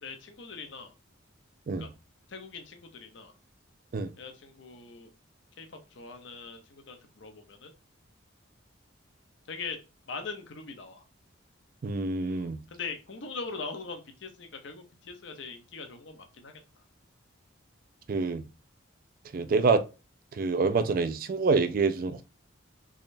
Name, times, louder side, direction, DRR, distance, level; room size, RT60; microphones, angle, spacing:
voice 1, 0.0-0.9 1.8-1.9 2.3-3.3 4.2-5.1 5.6-7.7 9.5-9.8 10.1-11.0 12.3-16.6, left 4 dB, 60° left, 0.7 m, -41 dB
voice 2, 11.8-12.6 18.1-18.4 19.3-19.8 20.3-22.2, right 4 dB, 45° right, 0.3 m, -26 dB
3.6 x 3.2 x 2.5 m
head